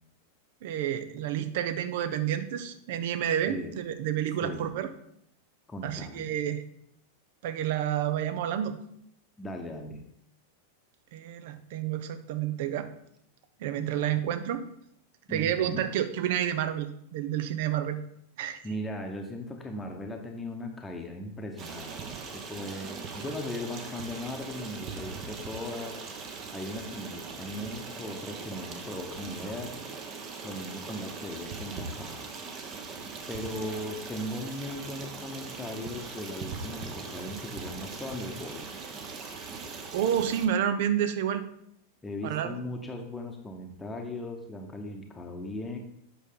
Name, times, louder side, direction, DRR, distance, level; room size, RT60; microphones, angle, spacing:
voice 1, 0.6-4.9 5.8-6.6 7.4-8.8 11.1-12.9 13.6-14.7 15.3-18.0 18.4-18.6 39.9-41.4 42.2-42.6, right 10 dB, 55° right, 11 dB, 0.7 m, -29 dB
voice 2, 5.7-6.3 9.4-10.0 15.3-15.8 18.6-22.0 22.3-26.0 26.3-29.8 30.4-32.3 33.3-38.8 42.0-45.8, left 1 dB, 15° left, 3 dB, 1.0 m, -38 dB
Stream, 21.6-40.5, right 4 dB, 35° right, 1.1 m, -40 dB
8.2 x 6.0 x 3.8 m, 0.73 s
figure-of-eight pair, 90°, 0 cm